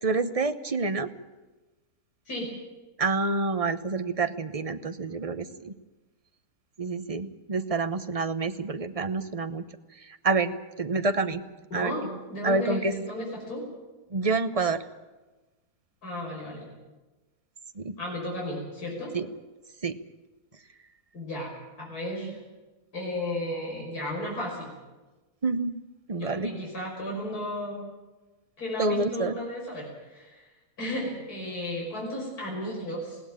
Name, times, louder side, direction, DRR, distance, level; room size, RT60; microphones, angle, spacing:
voice 1, 0.0-1.1 3.0-5.7 6.8-9.6 10.0-11.4 11.7-12.0 12.4-12.9 14.1-14.8 17.7-18.0 19.1-19.3 19.8-20.0 25.4-25.7 26.1-26.6 28.8-29.3, right 3 dB, 30° right, 10 dB, 0.8 m, -28 dB
voice 2, 11.7-12.0 12.3-13.6 16.0-16.6 18.0-19.1 21.1-21.5 21.8-22.4 22.9-24.7 26.1-27.8 28.6-30.4 30.8-33.2, left 1 dB, 70° left, -2 dB, 6.1 m, -34 dB
20.5 x 17.0 x 8.8 m, 1.2 s
omnidirectional pair, 1.7 m